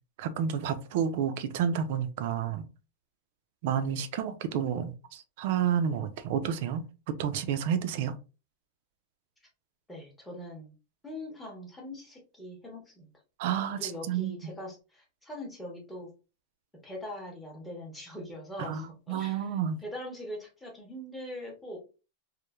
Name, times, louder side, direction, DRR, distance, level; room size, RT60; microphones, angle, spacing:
voice 1, 0.2-2.7 3.6-6.9 7.2-8.1 13.4-14.5 18.6-19.8, right 8 dB, 50° right, 0.4 m, -30 dB
voice 2, 9.9-10.7 11.0-13.1 13.8-16.1 16.8-19.5 19.8-21.8, left 1 dB, 5° left, 0.7 m, -42 dB
3.0 x 2.0 x 2.2 m
supercardioid pair, 165°, 0 cm